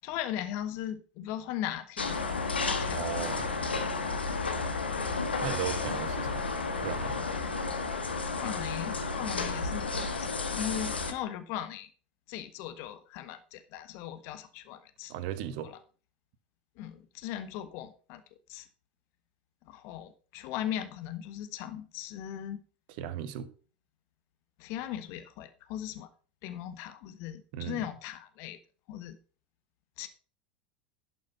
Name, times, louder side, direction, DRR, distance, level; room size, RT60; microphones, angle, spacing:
voice 1, 0.0-2.1 2.6-3.0 3.9-4.3 8.3-11.9 12.3-15.1 15.6-15.8 16.8-18.2 18.5-18.7 19.6-22.6 24.6-26.1 26.4-28.6 28.9-29.2 30.0-30.1, left 11 dB, 50° left, 1.3 m, -38 dB
sound 1, 2.0-11.1, left 4 dB, 85° left, 1.4 m, -32 dB
voice 2, 2.9-3.6 5.4-6.5 6.8-7.2 15.1-15.7 23.0-23.5 27.5-27.8, right 10 dB, 55° right, 1.2 m, -36 dB
11.5 x 5.9 x 5.5 m
figure-of-eight pair, 80°, 5 cm